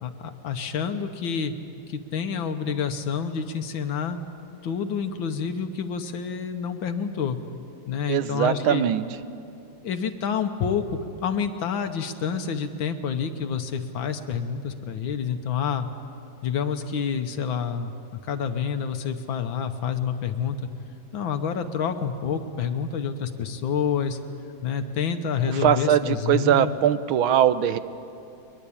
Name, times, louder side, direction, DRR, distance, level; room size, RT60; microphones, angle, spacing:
voice 1, 0.0-1.5 1.9-4.2 4.6-7.4 7.9-8.9 9.8-15.9 16.4-20.7 21.1-24.2 24.6-26.8, left 7 dB, 75° left, 7 dB, 1.8 m, -28 dB
voice 2, 8.1-9.0 25.5-27.8, right 10 dB, 85° right, 13 dB, 1.6 m, -21 dB
22.0 x 21.5 x 8.7 m, 2.6 s
omnidirectional pair, 2.2 m